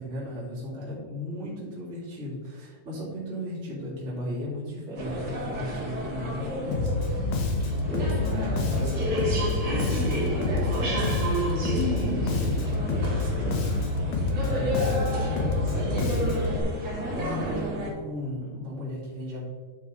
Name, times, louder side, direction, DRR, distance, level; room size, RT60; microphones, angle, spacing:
voice 1, 0.0-7.4 7.9-9.1 9.6-13.7 14.3-16.8 17.1-19.4, left 1 dB, 25° right, -8 dB, 2.2 m, -36 dB
sound 1, 5.0-17.9, equal, 40° right, 2.4 m, -31 dB
Bass guitar, 6.7-16.6, left 2 dB, 65° left, 1.8 m, -27 dB
9.4 x 5.4 x 4.0 m, 1.5 s
omnidirectional pair, 4.0 m